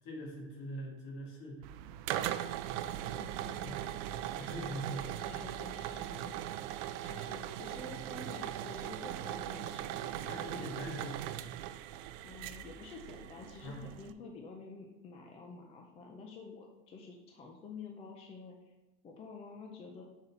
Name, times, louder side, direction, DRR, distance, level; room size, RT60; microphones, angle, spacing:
voice 1, 0.0-1.6 3.6-3.8 4.4-5.1 10.2-11.2 13.6-13.8, equal, 50° left, -1 dB, 1.9 m, -42 dB
sound 1, 1.6-14.1, right 12 dB, 80° right, 0.5 m, -40 dB
voice 2, 3.0-4.0 4.9-11.0 12.2-18.7 19.0-20.0, left 3 dB, 15° left, 1 dB, 0.3 m, -50 dB
7.1 x 4.0 x 4.1 m, 1.0 s
cardioid pair, 170°, 38 cm